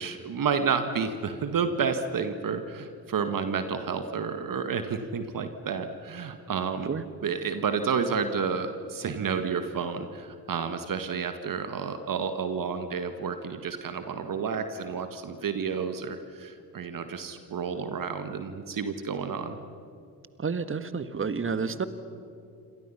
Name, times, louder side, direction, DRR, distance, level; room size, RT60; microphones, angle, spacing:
voice 1, 0.0-6.9 7.2-19.6, right 6 dB, 45° right, 8 dB, 1.8 m, -30 dB
voice 2, 20.4-21.9, right 5 dB, 25° right, 12 dB, 1.7 m, -30 dB
28.5 x 26.0 x 5.8 m, 2.5 s
hypercardioid pair, 50°, 47 cm